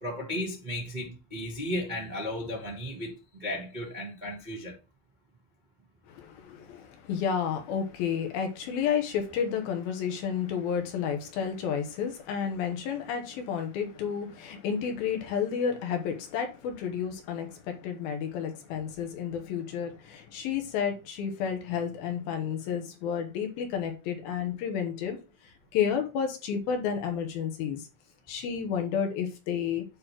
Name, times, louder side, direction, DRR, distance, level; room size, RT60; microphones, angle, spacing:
voice 1, 0.0-4.7, left 1 dB, 75° right, 0.4 m, -35 dB
voice 2, 6.1-25.2 25.4-27.9 28.3-29.8, left 7 dB, 70° left, 2.6 m, -31 dB
8.9 x 3.2 x 5.9 m
omnidirectional pair, 5.0 m